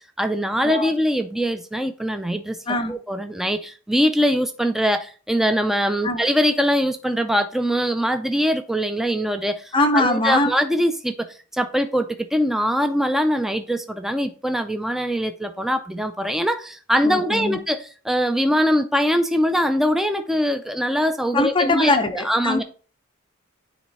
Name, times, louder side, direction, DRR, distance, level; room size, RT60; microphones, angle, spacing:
voice 1, 0.2-2.6 2.9-22.6, equal, ahead, 0.3 m, -22 dB
voice 2, 9.7-10.5 17.0-17.6 21.3-22.6, left 2 dB, 25° left, 0.8 m, -21 dB
9.1 x 3.1 x 4.1 m
head